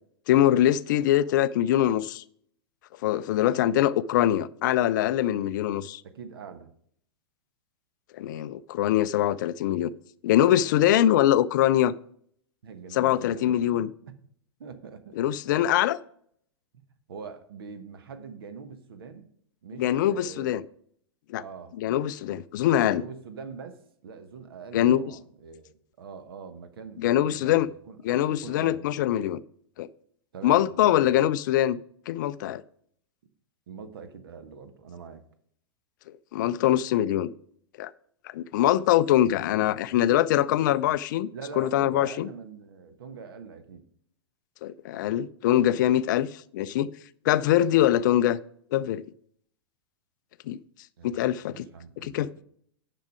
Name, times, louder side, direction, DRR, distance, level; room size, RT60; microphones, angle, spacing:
voice 1, 0.3-2.2 3.0-6.0 8.1-9.9 10.2-11.9 12.9-13.9 15.2-16.0 19.8-20.6 21.3-21.4 21.8-23.0 24.7-25.0 27.0-27.7 28.0-29.4 29.8-29.9 30.4-31.8 32.1-32.6 36.3-37.3 37.8-37.9 38.2-41.3 41.6-42.3 44.6-46.9 47.2-48.4 48.7-49.0 50.5-50.6 51.0-51.7 52.0-52.3, left 12 dB, 45° left, 0.4 m, -23 dB
voice 2, 6.0-6.7 12.6-13.6 14.0-14.1 14.6-15.2 16.7-19.3 19.6-20.6 21.4-21.7 22.9-28.0 28.2-28.9 30.3-31.1 33.7-35.2 41.3-43.8 51.0-51.2 51.5-52.4, right 5 dB, 60° right, 1.2 m, -43 dB
10.5 x 6.0 x 4.9 m
figure-of-eight pair, 100°, 14 cm